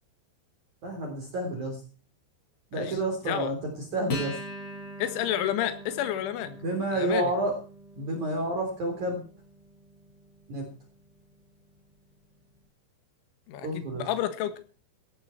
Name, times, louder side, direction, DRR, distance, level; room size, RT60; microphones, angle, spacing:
voice 1, 0.8-1.8 2.7-4.4 6.6-7.6 7.9-9.2 10.5-10.7 13.6-14.0, right 1 dB, 40° right, 2 dB, 4.6 m, -30 dB
Acoustic guitar, 4.1-10.9, left 2 dB, 55° left, 8.7 m, -41 dB
voice 2, 5.0-6.5 6.9-7.3 13.5-14.5, left 11 dB, 75° left, 10 dB, 4.0 m, -30 dB
17.5 x 14.5 x 4.5 m, 0.38 s
omnidirectional pair, 5.6 m